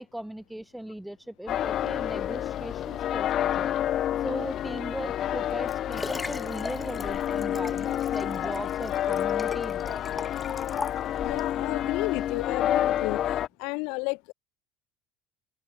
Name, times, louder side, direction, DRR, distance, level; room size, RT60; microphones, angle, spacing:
voice 1, 0.0-3.8 4.2-10.3, right 1 dB, 5° right, 2.0 m, -38 dB
sound 1, 1.5-13.5, left 11 dB, 50° left, 0.3 m, -29 dB
Liquid, 5.3-11.5 12.2-12.3, left 3 dB, 15° left, 2.3 m, -40 dB
voice 2, 11.2-13.2 13.6-14.3, left 32 dB, 75° left, 2.4 m, -32 dB
supercardioid pair, 100°, 0 cm